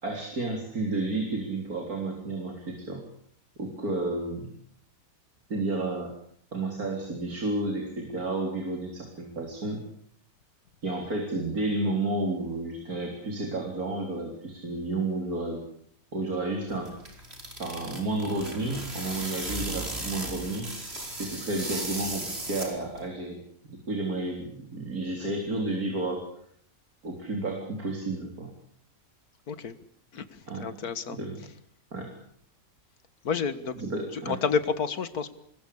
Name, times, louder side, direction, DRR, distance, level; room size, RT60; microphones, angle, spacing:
voice 1, 0.0-3.0 3.6-4.5 5.5-6.1 6.5-9.8 10.8-15.6 16.1-16.9 17.6-20.7 21.2-23.4 23.7-26.3 27.0-28.5 30.5-30.7 31.2-31.4 31.9-32.1 33.8-34.4, right 2 dB, 80° right, 2 dB, 4.2 m, -31 dB
sound 1, 16.7-23.1, right 2 dB, 45° right, 5.3 m, -36 dB
voice 2, 30.1-31.2 33.2-33.9 34.1-35.3, left 6 dB, 90° left, 13 dB, 2.0 m, -30 dB
26.0 x 21.5 x 8.5 m, 0.65 s
omnidirectional pair, 1.5 m